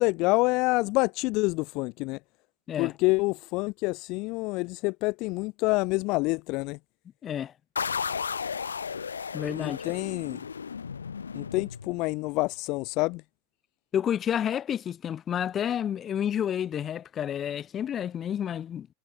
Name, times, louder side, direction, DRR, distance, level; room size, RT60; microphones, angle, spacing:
voice 1, 0.0-2.2 2.8-6.8 9.6-10.5 11.3-13.2, left 24 dB, 50° left, 2.0 m, -27 dB
voice 2, 7.2-7.5 9.3-9.8 13.9-18.9, left 9 dB, 30° left, 4.3 m, -30 dB
sound 1, 7.8-12.3, left 6 dB, 80° left, 1.1 m, -34 dB
figure-of-eight pair, 85°, 0 cm